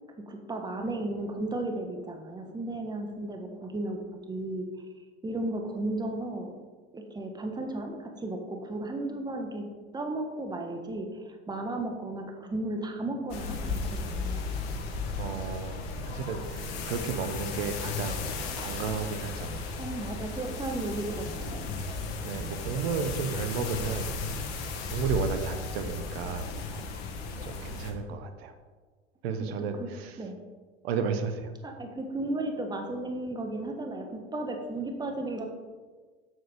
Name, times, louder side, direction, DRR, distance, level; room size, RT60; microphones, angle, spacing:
voice 1, 0.3-4.7 5.2-6.5 6.9-14.4 19.8-21.7 26.7-27.2 29.4-29.9 30.2-30.4 31.6-35.5, right 2 dB, 10° right, 3 dB, 1.4 m, -34 dB
sound 1, 13.3-27.9, left 3 dB, 65° left, 1.7 m, -35 dB
voice 2, 15.2-19.5 22.2-24.5 24.9-26.5 27.4-28.5 29.2-30.2 30.8-31.5, right 6 dB, 65° right, 8 dB, 1.2 m, -33 dB
7.8 x 6.5 x 5.2 m, 1.4 s
hypercardioid pair, 90°, 33 cm